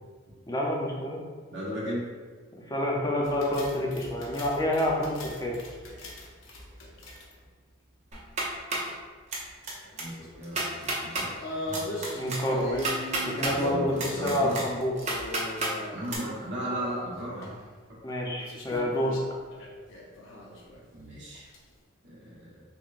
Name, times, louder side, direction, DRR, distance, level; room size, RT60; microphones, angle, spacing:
voice 1, 0.5-1.2 2.7-5.6 12.1-13.0 13.3-14.9 18.0-19.2, left 1 dB, 20° left, -3 dB, 0.5 m, -28 dB
voice 2, 1.5-2.1 10.0-11.3 11.7-11.8 13.4-14.6 15.9-17.5 20.9-21.5 22.0-22.6, equal, 55° right, -7 dB, 1.1 m, -36 dB
sound 1, 3.2-7.5 9.4-10.5 10.8-10.9 11.4-14.3 15.0-16.3 16.7-17.5 18.4-20.8 21.3-21.6, left 1 dB, 65° left, 0.6 m, -39 dB
sound 2, 8.1-8.9 9.3-9.7 10.0-10.1 10.4-11.3 11.7-13.5 14.0-15.7 16.1-16.2, right 2 dB, 35° right, 0.6 m, -31 dB
5.9 x 2.1 x 2.5 m, 1.5 s
head